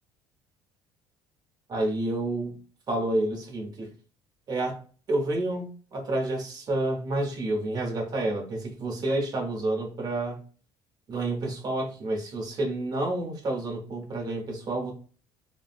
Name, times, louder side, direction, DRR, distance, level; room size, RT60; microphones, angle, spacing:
voice 1, 1.7-2.6 2.9-3.9 4.5-4.8 5.1-10.4 11.1-14.9, right 2 dB, 40° right, 1.1 m, -29 dB
3.5 x 2.1 x 2.5 m
cardioid pair, 110°, 10 cm